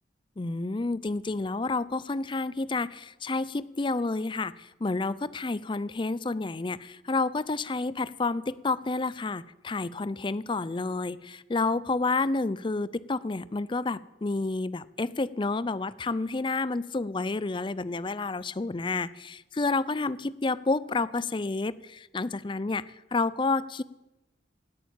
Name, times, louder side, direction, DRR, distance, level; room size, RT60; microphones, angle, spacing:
voice 1, 0.4-23.8, left 3 dB, 25° left, 19 dB, 0.4 m, -30 dB
17.5 x 8.9 x 8.8 m, 1.0 s
head